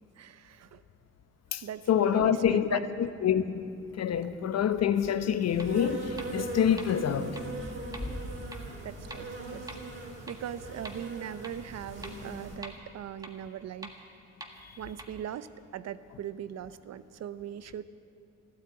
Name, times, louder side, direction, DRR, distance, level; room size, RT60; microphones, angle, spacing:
voice 1, 0.2-0.8 1.6-2.8 8.8-13.9 14.8-17.8, right 9 dB, 60° right, 0.7 m, -40 dB
voice 2, 1.9-3.7 4.0-7.4, left 9 dB, 60° left, 1.0 m, -26 dB
Thunder / Rain, 3.6-11.8, equal, 10° left, 1.6 m, -47 dB
Insect, 5.4-12.6, right 2 dB, 45° right, 3.8 m, -40 dB
sound 1, 5.6-5.7 6.2-6.3 6.8-6.9 7.4-7.5 7.9-8.0 8.5-8.6 9.1-9.2 9.7-9.8 10.3-10.4 10.8-10.9 11.4-11.5 12.0-12.1 12.6-12.7 13.2-13.3 13.8-13.9 14.4-14.5 15.0-15.1, right 1 dB, 10° right, 1.7 m, -42 dB
13.5 x 12.0 x 8.8 m
cardioid pair, 90°, 30 cm